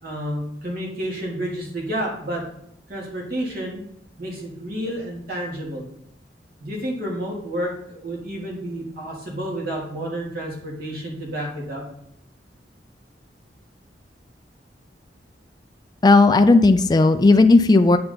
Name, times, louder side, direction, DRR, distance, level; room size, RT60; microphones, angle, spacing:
voice 1, 0.0-2.4 2.9-3.8 4.2-5.9 6.6-11.8, right 1 dB, 60° right, -3 dB, 2.9 m, -30 dB
voice 2, 16.0-18.0, left 3 dB, 25° left, 7 dB, 0.4 m, -14 dB
8.7 x 5.7 x 4.0 m, 0.74 s
head